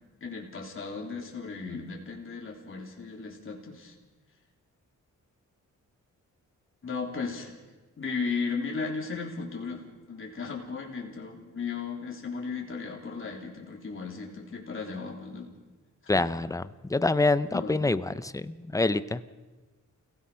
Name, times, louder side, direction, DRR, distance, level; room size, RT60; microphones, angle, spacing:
voice 1, 0.2-3.9 6.8-7.6 8.0-15.5 16.0-16.2 17.5-17.8, left 4 dB, 40° left, -1 dB, 3.5 m, -36 dB
voice 2, 16.1-16.6 16.9-19.2, left 2 dB, 10° left, 14 dB, 0.6 m, -26 dB
29.5 x 17.0 x 5.7 m, 1.2 s
wide cardioid pair, 125°, 31 cm